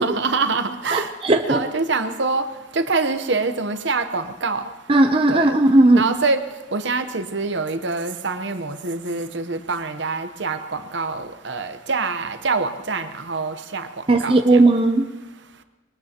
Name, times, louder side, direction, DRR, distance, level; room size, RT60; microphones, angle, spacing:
voice 1, 0.0-1.1 1.4-2.4 2.7-4.6 5.3-5.5 5.9-6.4 6.7-13.9 14.2-14.6, right 3 dB, 60° right, 9 dB, 0.9 m, -25 dB
voice 2, 0.9-1.6 4.9-6.0 14.1-15.1, right 2 dB, 25° right, 5 dB, 0.6 m, -16 dB
22.0 x 20.0 x 2.9 m, 1.2 s
head